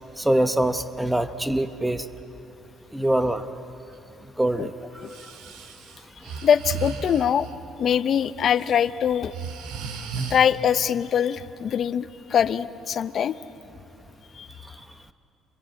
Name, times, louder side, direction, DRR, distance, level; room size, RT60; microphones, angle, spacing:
voice 1, 0.2-2.0 2.9-3.5 4.4-4.7, right 1 dB, 5° right, 9 dB, 0.9 m, -23 dB
Breathing, 5.0-7.5 8.4-8.7 9.1-10.4, right 5 dB, 80° right, 2.0 m, -34 dB
voice 2, 6.4-7.5 7.8-9.3 10.3-13.3 14.4-14.5, left 8 dB, 40° left, 13 dB, 0.6 m, -23 dB
27.0 x 22.0 x 7.6 m, 2.9 s
cardioid pair, 150°, 0 cm